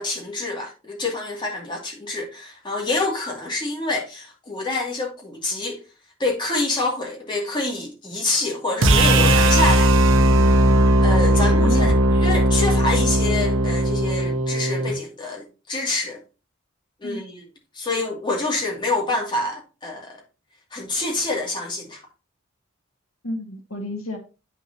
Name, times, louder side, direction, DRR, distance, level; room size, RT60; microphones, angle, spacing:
voice 1, 0.0-5.8 6.2-9.9 11.0-11.9 12.2-16.2 17.0-17.4 17.7-20.2 20.7-22.0, left 2 dB, 20° left, 2.5 m, -26 dB
sound 1, 8.8-15.0, right 1 dB, 70° right, 0.9 m, -17 dB
voice 2, 11.0-12.0 17.0-17.2 23.2-24.2, left 1 dB, 85° left, 1.7 m, -32 dB
9.0 x 6.2 x 2.8 m
head